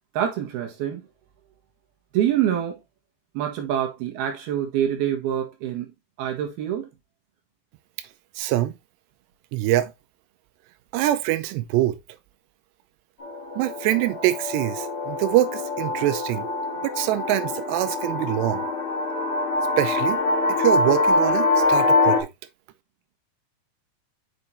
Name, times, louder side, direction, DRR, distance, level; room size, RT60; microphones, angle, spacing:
voice 1, 0.2-1.0 2.1-2.8 3.4-5.9 6.2-6.9, right 10 dB, 70° right, 3.5 m, -25 dB
voice 2, 8.4-8.8 9.5-9.9 10.9-12.0 13.6-16.5 16.8-18.6 19.8-20.2 20.5-22.3, right 14 dB, 90° right, 2.9 m, -24 dB
sound 1, 13.2-22.2, left 3 dB, 45° left, 1.3 m, -24 dB
7.8 x 5.7 x 3.1 m
omnidirectional pair, 4.8 m